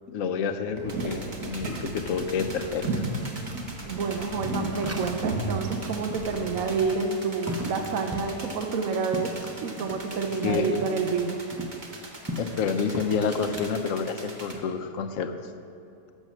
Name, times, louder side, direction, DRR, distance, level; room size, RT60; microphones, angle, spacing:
voice 1, 0.1-3.1 10.4-10.8 12.4-15.3, left 5 dB, 65° left, 8 dB, 1.1 m, -28 dB
sound 1, 0.7-6.7, right 2 dB, 90° right, 2.0 m, -34 dB
sound 2, 0.9-14.5, right 2 dB, 35° right, 1.3 m, -43 dB
sound 3, 2.6-5.4 5.7-5.8 6.1-10.7 11.0-13.7 14.2-14.6, equal, 15° right, 0.5 m, -38 dB
voice 2, 3.8-9.3 9.6-11.4, right 5 dB, 70° right, 4 dB, 1.1 m, -29 dB
12.0 x 7.3 x 6.3 m, 2.7 s
omnidirectional pair, 1.6 m